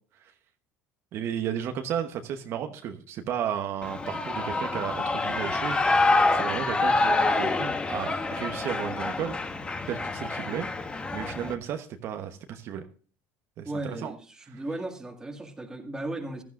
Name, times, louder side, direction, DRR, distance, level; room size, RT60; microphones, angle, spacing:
voice 1, 1.1-5.8 6.3-9.4 9.9-10.7 11.1-12.8 13.6-14.1 14.5-14.6, right 9 dB, 55° right, 6 dB, 1.0 m, -33 dB
Shout / Cheering, 3.8-11.5, left 3 dB, 20° left, 1.1 m, -27 dB
voice 2, 13.6-16.4, right 2 dB, 10° right, 4 dB, 1.9 m, -36 dB
15.5 x 12.0 x 2.5 m, 0.40 s
supercardioid pair, 115°, 5 cm